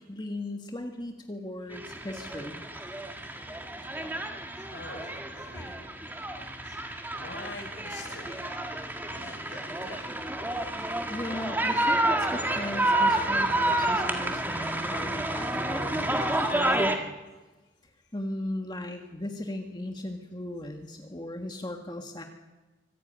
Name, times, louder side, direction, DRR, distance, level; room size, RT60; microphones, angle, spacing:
voice 1, 0.1-2.6 11.1-17.0 18.1-22.2, left 1 dB, 25° left, 4 dB, 1.6 m, -37 dB
sound 1, 1.7-17.0, right 1 dB, 10° right, 1.8 m, -29 dB
voice 2, 4.7-5.8 6.6-6.8 7.1-8.4 9.0-10.2 10.8-10.9 19.3-19.4, left 2 dB, 75° left, 3 dB, 6.1 m, -45 dB
25.0 x 15.0 x 9.0 m, 1.2 s
head